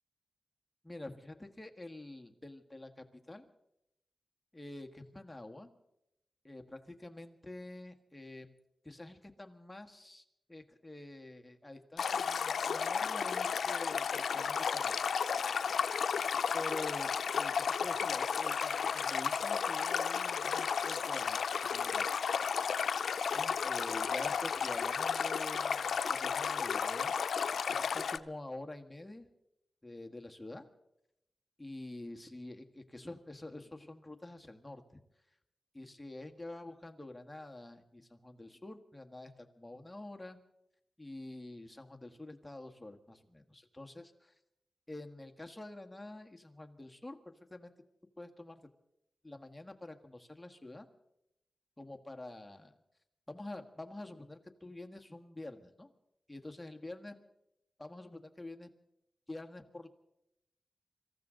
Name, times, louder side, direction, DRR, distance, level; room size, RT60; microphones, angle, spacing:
voice 1, 0.8-3.5 4.5-5.7 6.4-8.6 8.8-14.9 16.5-17.5 17.8-22.1 23.3-27.2 27.7-29.3 29.8-30.7 31.6-35.0 35.7-40.4 41.0-44.3 44.9-47.7 48.2-48.6 49.2-50.9 51.8-52.8 53.3-55.9 56.3-57.2 57.8-58.7 59.3-59.9, left 2 dB, 15° left, 4 dB, 1.7 m, -47 dB
Stream, 12.0-28.2, left 6 dB, 90° left, 0.5 m, -33 dB
25.5 x 14.5 x 3.9 m, 0.83 s
cardioid pair, 65°, 0 cm